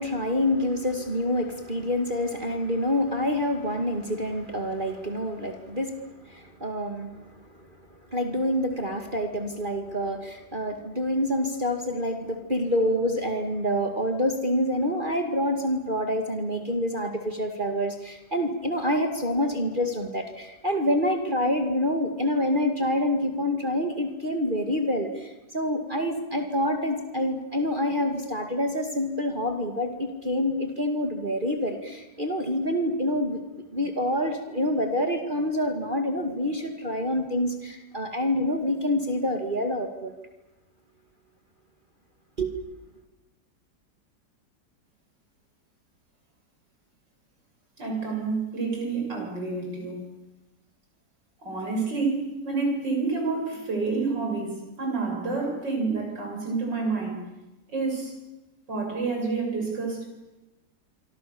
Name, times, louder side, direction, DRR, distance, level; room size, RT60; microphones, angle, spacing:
voice 1, 0.0-7.2 7.6-40.1 42.4-42.5, left 1 dB, 25° right, 5 dB, 2.4 m, -27 dB
voice 2, 47.8-50.0 51.4-57.2 57.7-58.2 58.7-60.0, right 4 dB, 80° right, 1 dB, 7.7 m, -28 dB
27.0 x 25.0 x 7.1 m, 1.0 s
omnidirectional pair, 1.9 m